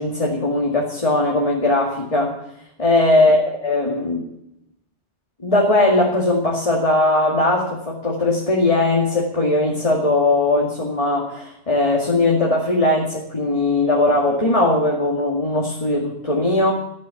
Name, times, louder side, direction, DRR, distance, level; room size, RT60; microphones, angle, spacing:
voice 1, 0.0-2.4 2.8-4.2 5.4-16.7, left 2 dB, 30° left, -2 dB, 2.4 m, -19 dB
13.5 x 12.5 x 7.1 m, 0.79 s
omnidirectional pair, 1.2 m